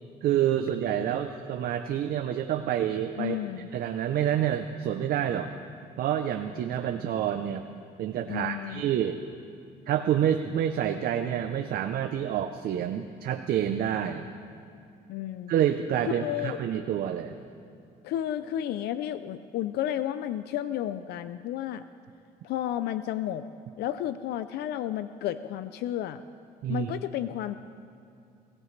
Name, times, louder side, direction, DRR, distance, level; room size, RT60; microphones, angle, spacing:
voice 1, 0.2-3.4 3.7-5.5 6.0-7.7 8.0-9.2 9.9-14.3 15.5-17.4 26.6-26.9, right 10 dB, 65° right, 6 dB, 0.7 m, -28 dB
voice 2, 3.2-3.7 8.3-8.8 15.1-15.5 16.1-16.6 18.0-21.8 22.4-23.4 23.8-26.2 26.7-27.5, left 11 dB, 75° left, 12 dB, 0.5 m, -32 dB
21.5 x 16.0 x 3.3 m, 2.5 s
cardioid pair, 110°, 17 cm